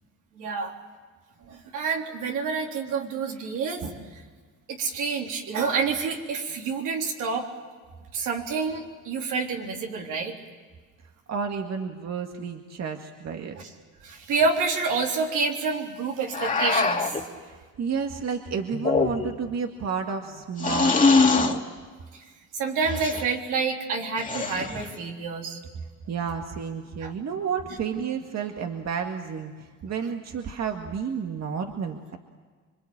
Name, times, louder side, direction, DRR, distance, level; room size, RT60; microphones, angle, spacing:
voice 1, 0.4-0.8 1.4-4.0 4.7-7.5 8.1-10.3 14.0-17.2 22.1-22.2 22.5-25.6 27.0-27.1, right 4 dB, 90° right, 0 dB, 3.8 m, -28 dB
voice 2, 11.3-13.6 17.4-21.0 21.2-21.6 26.1-29.5 29.8-32.2, right 6 dB, 60° right, 3 dB, 2.0 m, -31 dB
sound 1, 16.3-17.2 18.7-19.5 20.6-21.6 22.8-23.3 24.2-24.9, left 4 dB, 25° left, 2.5 m, -23 dB
26.5 x 24.0 x 8.8 m, 1.5 s
cardioid pair, 90°, 30 cm